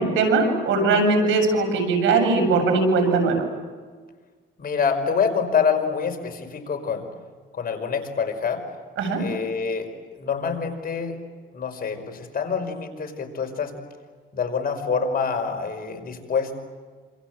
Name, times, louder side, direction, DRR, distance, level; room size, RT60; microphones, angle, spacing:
voice 1, 0.0-3.4 9.0-9.2, right 3 dB, 80° right, 4 dB, 7.5 m, -20 dB
voice 2, 4.6-7.1 7.5-8.6 9.2-9.9 10.2-11.2 11.5-13.8 14.3-16.6, left 6 dB, 50° left, 5 dB, 5.4 m, -26 dB
28.0 x 27.0 x 7.8 m, 1.5 s
cardioid pair, 90°, 20 cm